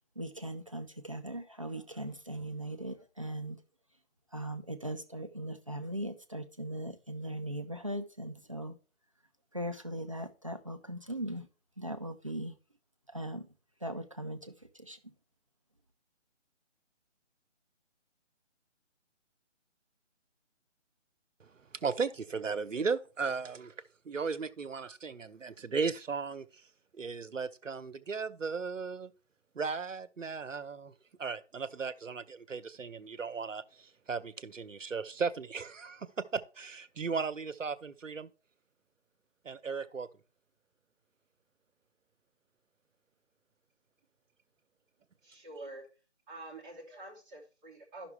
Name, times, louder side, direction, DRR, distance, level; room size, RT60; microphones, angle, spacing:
voice 1, 0.2-3.6 4.3-8.8 9.5-11.5 11.8-12.5 13.1-13.4 13.8-15.0, right 1 dB, 25° right, 0.5 m, -39 dB
voice 2, 21.4-23.7 24.0-26.6 26.9-29.1 29.5-30.9 31.2-38.3 39.4-40.1, right 5 dB, 90° right, 0.9 m, -36 dB
voice 3, 45.2-45.9 46.3-48.1, right 2 dB, 5° right, 0.8 m, -47 dB
12.0 x 5.9 x 3.3 m
figure-of-eight pair, 155°, 37 cm